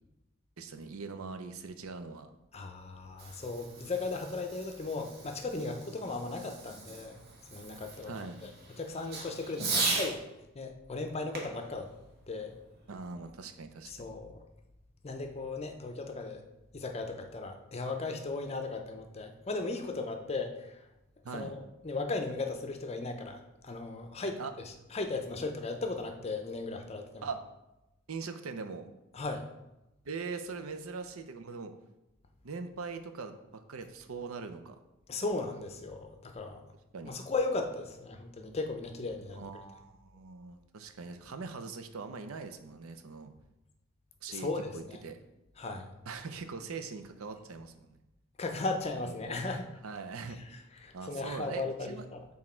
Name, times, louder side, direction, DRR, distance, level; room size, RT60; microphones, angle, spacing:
voice 1, 0.6-2.3 8.1-8.4 9.6-10.0 12.9-14.1 21.2-21.5 24.4-24.5 27.2-27.4 28.1-28.9 30.0-31.7 32.4-34.8 36.9-37.2 39.3-43.3 44.2-45.2 46.1-48.0 49.0-49.4 49.8-50.4 50.9-52.0, right 4 dB, 90° right, 8 dB, 0.6 m, -41 dB
voice 2, 2.5-7.2 7.5-8.5 8.8-10.2 10.5-11.9 12.3-12.6 13.9-14.4 15.0-16.4 16.7-20.8 21.3-24.4 24.6-27.3 29.1-29.5 35.1-36.6 37.0-39.6 44.3-45.0 45.6-45.9 48.4-49.7 50.3-52.2, left 3 dB, 30° left, 5 dB, 0.6 m, -36 dB
Fireworks, 2.9-10.2 11.3-13.0, right 3 dB, 50° right, 1.2 m, -38 dB
6.1 x 3.7 x 4.4 m, 0.94 s
head